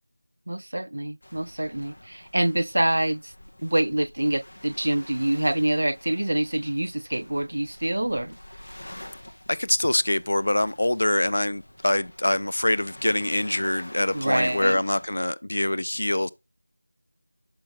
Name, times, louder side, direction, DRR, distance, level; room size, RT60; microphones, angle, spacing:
voice 1, 0.5-3.3 3.6-8.4 14.1-14.8, right 1 dB, 75° right, 0.3 m, -26 dB
Waves surf, 1.2-15.2, left 1 dB, 90° left, 1.8 m, -47 dB
voice 2, 9.5-16.3, left 1 dB, 65° left, 0.5 m, -24 dB
6.8 x 5.3 x 3.6 m
figure-of-eight pair, 175°, 0 cm